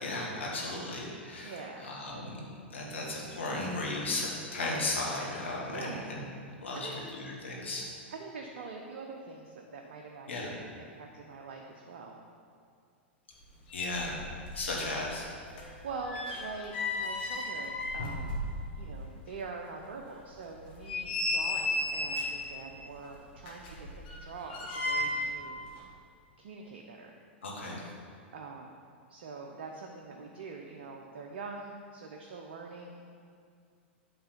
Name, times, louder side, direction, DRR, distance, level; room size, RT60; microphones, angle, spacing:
voice 1, 0.0-1.5 1.8-2.4 2.7-6.2 6.6-7.9 10.3-10.5 13.7-14.2 14.5-15.3 27.4-27.9, left 2 dB, 75° left, -3 dB, 1.7 m, -35 dB
voice 2, 1.4-2.0 5.7-6.2 6.8-7.0 8.1-12.2 14.0-14.2 15.5-18.3 18.8-25.7 26.4-27.2 28.3-28.7 29.1-33.0, right 4 dB, 60° right, 1 dB, 0.6 m, -44 dB
sound 1, 13.4-13.5 13.7-14.7 15.0-18.9 19.3-19.4 19.9-20.0 20.6-22.5 23.4-25.4 25.7-25.8, left 2 dB, 55° left, 1.6 m, -34 dB
8.0 x 3.8 x 5.0 m, 2.2 s
figure-of-eight pair, 95°, 6 cm